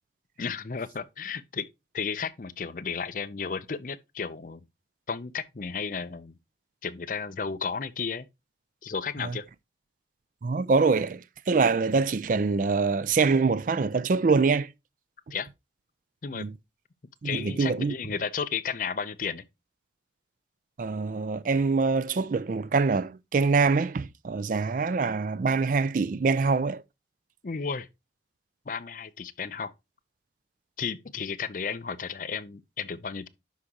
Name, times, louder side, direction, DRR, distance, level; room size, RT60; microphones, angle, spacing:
voice 1, 0.4-1.7 1.9-4.6 5.1-6.3 6.8-8.3 8.8-9.4 15.3-15.5 16.2-16.5 17.2-19.4 27.4-27.9 28.7-29.7 30.8-33.3, left 5 dB, 45° left, 0.5 m, -33 dB
voice 2, 10.4-14.7 16.3-16.5 17.2-18.0 20.8-26.8, right 4 dB, 45° right, 0.4 m, -25 dB
11.5 x 4.8 x 2.9 m
head